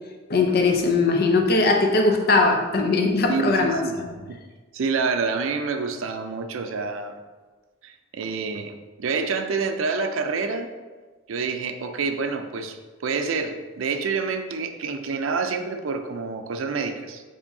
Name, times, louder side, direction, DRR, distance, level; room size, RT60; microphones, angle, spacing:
voice 1, 0.3-4.1, left 3 dB, 50° left, 3 dB, 0.5 m, -20 dB
voice 2, 3.3-4.4 4.7-7.2 7.8-10.7 11.3-17.2, right 4 dB, 85° right, 7 dB, 0.4 m, -28 dB
7.0 x 2.7 x 2.6 m, 1.3 s
head